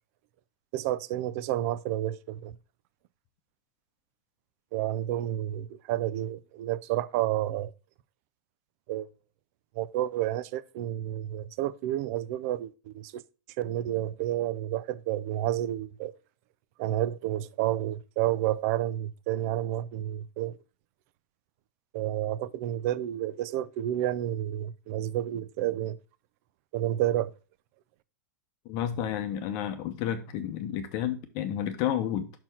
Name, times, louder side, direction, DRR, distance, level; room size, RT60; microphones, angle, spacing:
voice 1, 0.7-2.6 4.7-7.7 8.9-9.1 9.7-13.2 13.6-16.1 16.8-20.6 21.9-26.0 26.7-27.3, right 13 dB, 45° right, 0.5 m, -30 dB
voice 2, 28.6-32.3, left 10 dB, 40° left, 0.8 m, -31 dB
6.0 x 4.5 x 5.5 m
supercardioid pair, 145°, 10 cm